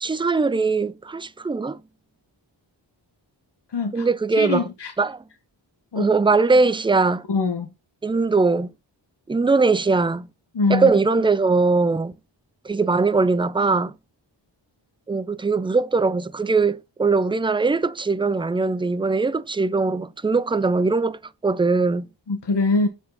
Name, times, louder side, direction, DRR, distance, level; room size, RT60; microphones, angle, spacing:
voice 1, 0.0-1.8 3.9-4.7 5.0-5.2 6.0-7.2 8.0-8.7 9.3-10.3 10.7-12.1 12.6-13.9 15.1-22.1, right 4 dB, 10° right, 0.4 m, -21 dB
voice 2, 3.7-4.1 4.4-4.9 5.9-6.1 7.3-7.7 10.5-10.9 22.3-22.9, left 3 dB, 65° left, 1.2 m, -23 dB
7.4 x 4.6 x 5.5 m
wide cardioid pair, 100°, 45 cm